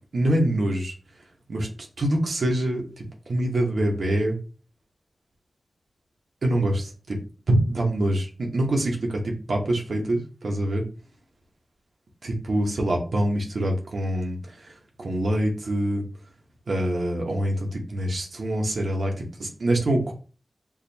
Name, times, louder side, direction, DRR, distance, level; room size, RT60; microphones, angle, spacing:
voice 1, 0.1-0.9 1.5-1.7 2.0-4.4 6.4-7.2 7.5-10.8 12.2-16.0 16.7-20.1, right 1 dB, 85° right, 0 dB, 1.0 m, -25 dB
4.7 x 2.5 x 2.7 m, 0.37 s
cardioid pair, 40°, 0 cm